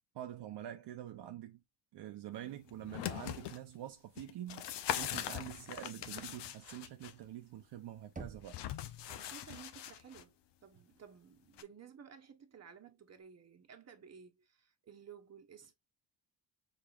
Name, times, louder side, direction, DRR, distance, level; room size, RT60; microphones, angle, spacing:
voice 1, 0.1-1.6 1.9-4.6 5.0-8.6, right 12 dB, 65° right, 0.7 m, -46 dB
sound 1, 2.7-3.6 4.2-7.1 8.5-10.2 11.6-11.7, left 11 dB, 70° left, 0.7 m, -41 dB
Knock, 8.2-9.1, right 4 dB, 20° right, 0.9 m, -49 dB
voice 2, 9.1-10.4 10.6-15.7, right 7 dB, 35° right, 1.1 m, -55 dB
4.9 x 4.1 x 2.4 m
cardioid pair, 70°, 43 cm